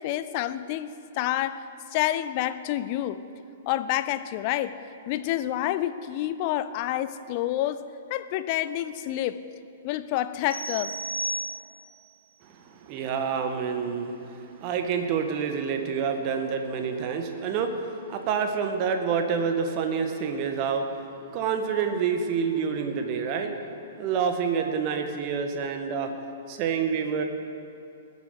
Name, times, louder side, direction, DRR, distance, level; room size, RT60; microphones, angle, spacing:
voice 1, 0.0-3.2 3.7-4.8 5.1-7.8 8.1-9.4 9.8-10.9, left 13 dB, 40° left, 14 dB, 0.6 m, -28 dB
sound 1, 10.5-12.1, right 2 dB, 70° right, 3.1 m, -33 dB
voice 2, 12.4-23.6 24.0-26.1 26.5-27.2, right 6 dB, 35° right, 5 dB, 1.6 m, -28 dB
20.0 x 7.6 x 8.0 m, 2.7 s
figure-of-eight pair, 110°, 0 cm